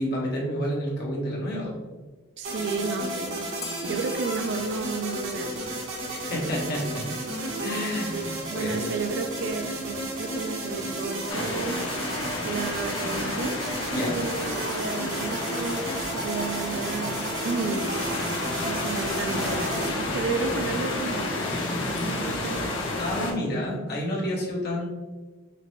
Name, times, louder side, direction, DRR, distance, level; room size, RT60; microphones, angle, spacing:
voice 1, 0.0-1.8 6.1-7.1 7.6-8.9 13.9-14.1 22.0-22.1 23.0-24.9, left 1 dB, 55° left, -4 dB, 1.3 m, -30 dB
voice 2, 2.4-5.7 8.5-9.7 10.2-11.9 12.4-13.6 14.0-18.0 18.6-21.4 22.0-22.8, right 4 dB, 60° right, 8 dB, 0.4 m, -32 dB
sound 1, 2.4-19.9, right 2 dB, 80° right, 1.3 m, -33 dB
Bell, 3.6-6.4, left 5 dB, 15° left, 0.3 m, -46 dB
sound 2, 11.3-23.3, left 2 dB, 80° left, 1.0 m, -31 dB
5.7 x 2.2 x 3.2 m, 1.2 s
head